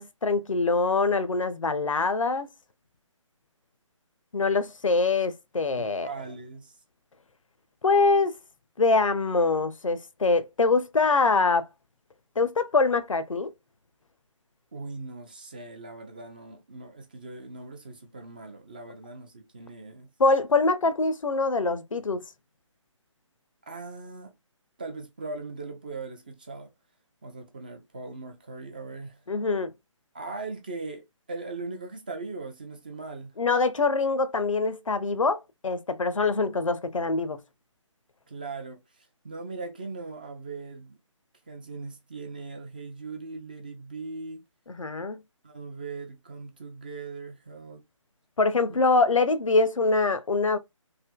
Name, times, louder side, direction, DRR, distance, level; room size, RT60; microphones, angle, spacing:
voice 1, 0.0-2.5 4.3-6.1 7.8-8.3 8.8-11.7 12.4-13.5 20.2-22.2 29.3-29.7 33.4-37.4 44.7-45.2 48.4-50.6, left 3 dB, 75° left, 0.5 m, -24 dB
voice 2, 5.7-6.8 14.7-20.1 23.6-24.3 24.8-26.7 27.2-29.2 30.1-33.4 38.3-41.0 41.5-44.4 45.4-47.8, right 3 dB, 15° right, 0.3 m, -39 dB
3.3 x 2.6 x 2.2 m
figure-of-eight pair, 145°, 17 cm